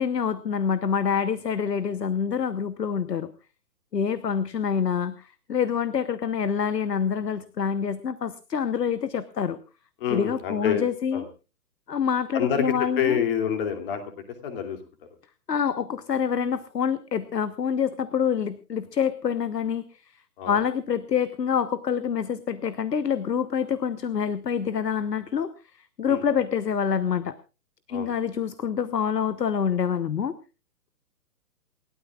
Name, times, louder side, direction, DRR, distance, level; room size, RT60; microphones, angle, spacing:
voice 1, 0.0-3.3 3.9-9.6 10.1-11.2 11.9-13.2 15.5-19.8 20.5-25.5 26.0-27.4 27.9-30.3, left 7 dB, 90° left, 14 dB, 1.2 m, -26 dB
voice 2, 10.0-11.3 12.3-14.1 14.4-14.8 20.4-20.6 26.1-26.2 27.9-28.1, left 8 dB, 35° left, 7 dB, 2.8 m, -27 dB
28.5 x 13.0 x 2.4 m, 0.32 s
hypercardioid pair, 150°, 47 cm